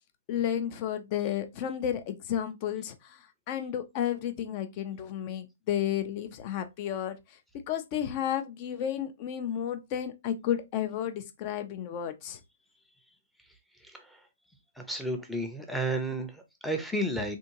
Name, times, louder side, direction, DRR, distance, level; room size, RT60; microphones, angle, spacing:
voice 1, 0.3-2.9 3.5-7.2 7.7-12.4, left 10 dB, 35° left, 0.6 m, -32 dB
voice 2, 14.8-17.4, right 1 dB, ahead, 0.7 m, -32 dB
3.5 x 2.6 x 2.9 m
figure-of-eight pair, 125°, 0 cm